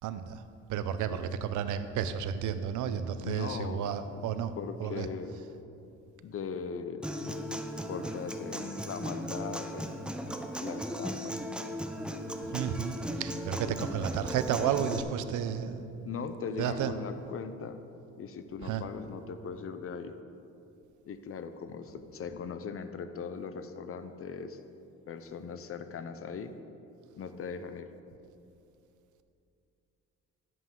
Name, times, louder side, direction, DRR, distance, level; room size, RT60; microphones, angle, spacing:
voice 1, 0.0-0.4 0.7-4.5 4.8-5.1 12.5-16.1 16.6-16.9 18.6-18.8, right 8 dB, 75° right, 11 dB, 0.6 m, -32 dB
voice 2, 3.2-4.2 4.6-5.5 6.2-7.1 7.9-10.1 10.6-11.4 13.6-13.9 16.0-17.8 18.2-20.2 21.0-24.6 25.1-26.5 27.2-27.9, left 6 dB, 50° left, 10 dB, 0.6 m, -39 dB
Human voice / Acoustic guitar, 7.0-15.0, equal, 5° right, 0.6 m, -37 dB
11.0 x 7.6 x 3.8 m, 2.7 s
cardioid pair, 90°, 30 cm